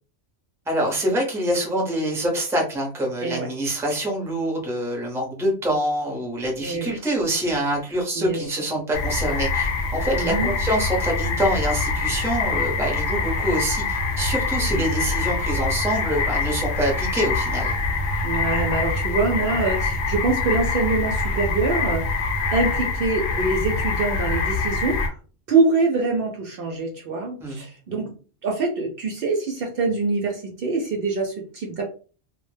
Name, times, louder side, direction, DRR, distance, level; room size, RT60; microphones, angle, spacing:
voice 1, 0.7-17.7 27.4-27.6, right 1 dB, 5° right, -1 dB, 0.6 m, -25 dB
voice 2, 6.6-6.9 8.2-8.5 10.1-10.5 14.7-14.9 18.2-22.0 22.5-25.1 25.5-28.1 28.4-31.9, right 3 dB, 60° right, 1 dB, 0.7 m, -24 dB
sound 1, 8.9-25.1, left 3 dB, 75° left, 0.9 m, -25 dB
2.1 x 2.1 x 3.2 m, 0.38 s
omnidirectional pair, 1.2 m